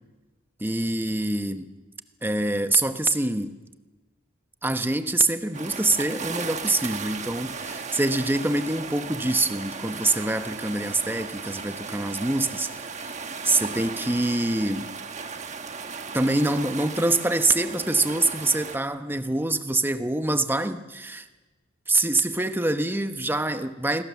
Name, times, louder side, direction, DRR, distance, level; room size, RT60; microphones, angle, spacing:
voice 1, 0.6-1.7 2.2-3.6 4.6-12.7 12.9-13.1 13.4-14.9 16.1-21.3 21.9-24.0, right 2 dB, 10° right, 9 dB, 1.0 m, -25 dB
sound 1, 5.5-18.8, right 5 dB, 35° right, 1.3 m, -36 dB
28.0 x 22.0 x 7.2 m, 1.2 s
head